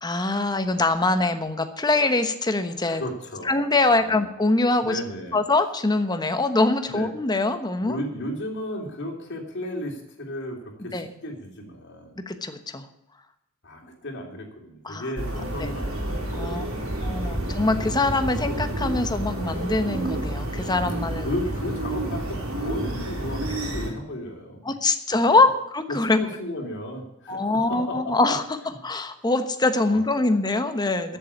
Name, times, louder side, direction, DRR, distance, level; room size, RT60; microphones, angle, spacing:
voice 1, 0.0-3.0 3.4-5.0 5.3-8.0 10.9-11.1 12.3-12.9 14.8-15.1 15.6-15.7 16.3-16.6 17.0-21.3 24.6-26.2 27.3-28.4 28.8-31.2, left 2 dB, 20° left, 8 dB, 1.1 m, -23 dB
voice 2, 2.9-3.6 3.8-4.2 4.8-5.4 6.9-7.1 7.8-12.2 13.6-17.3 21.2-24.7 25.3-25.4 25.9-28.3 29.8-30.3 31.1-31.2, left 1 dB, 55° left, 1 dB, 3.2 m, -34 dB
sound 1, 15.2-23.9, right 1 dB, 70° right, 3.9 m, -29 dB
13.0 x 7.3 x 8.5 m, 0.85 s
head